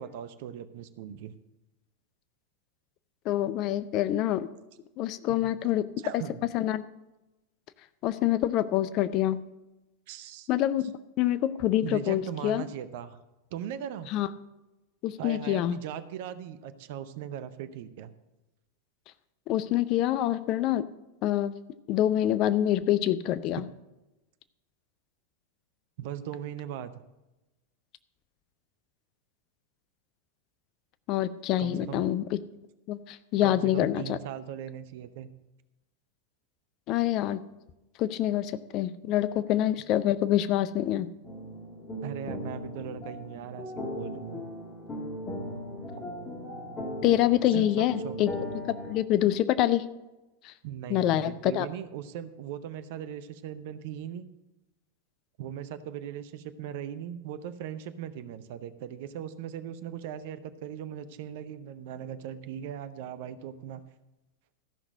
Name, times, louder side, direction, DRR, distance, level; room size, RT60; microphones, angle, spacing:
voice 1, 0.0-1.3 5.4-5.5 6.0-6.5 10.1-10.5 11.8-13.2 13.5-14.1 15.2-18.1 23.6-23.7 26.0-26.9 31.6-32.0 33.4-35.3 42.0-44.4 47.5-48.2 50.6-54.3 55.4-63.8, right 10 dB, 50° right, 12 dB, 0.7 m, -39 dB
voice 2, 3.3-4.5 5.0-5.9 6.1-6.2 6.5-6.8 8.0-9.4 10.5-10.9 11.2-12.6 14.1-14.3 15.0-15.8 19.5-20.8 21.2-21.5 21.9-23.6 31.1-32.4 32.9-34.2 36.9-37.4 38.0-41.1 47.0-48.3 48.9-49.8 50.4-50.5 50.9-51.7, left 12 dB, 40° left, 14 dB, 0.5 m, -26 dB
sound 1, 41.2-48.9, left 1 dB, 20° left, 2.0 m, -38 dB
13.5 x 6.0 x 6.3 m, 1.0 s
figure-of-eight pair, 90°, 0 cm